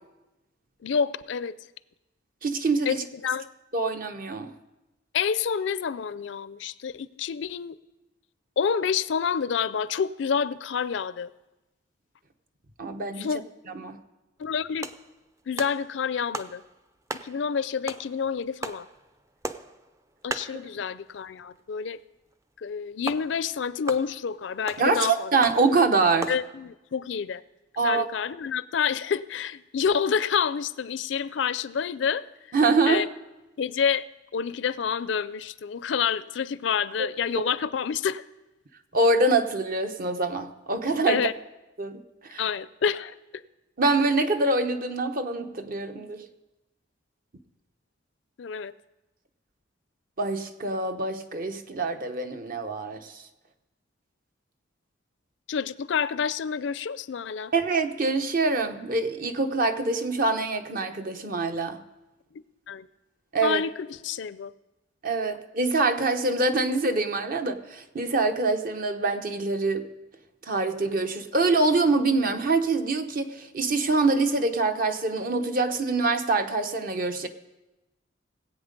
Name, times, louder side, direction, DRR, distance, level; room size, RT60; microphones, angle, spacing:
voice 1, 0.8-1.6 2.9-3.5 5.1-7.8 8.6-11.3 13.2-13.4 14.4-14.9 15.5-16.6 17.1-18.9 20.2-22.0 22.6-25.3 26.3-27.4 27.8-32.3 32.9-33.1 33.6-34.0 34.3-38.2 41.1-41.4 42.4-43.4 48.4-48.7 55.5-57.5 62.7-62.9 63.4-64.5, left 6 dB, 70° left, 17 dB, 0.4 m, -28 dB
voice 2, 2.4-3.0 3.7-4.5 12.8-13.3 13.8-14.0 24.8-26.3 27.8-28.1 32.5-33.0 37.0-37.1 38.9-41.2 41.8-42.0 42.3-42.4 43.8-46.2 50.2-53.1 57.5-61.8 63.3-63.6 65.0-69.9 70.5-77.3, right 3 dB, 45° right, 7 dB, 0.9 m, -25 dB
sound 1, 14.6-21.6 21.9-22.0 22.3-22.4 23.1-26.5, right 2 dB, 15° right, 0.5 m, -39 dB
18.5 x 8.4 x 5.2 m, 1.0 s
head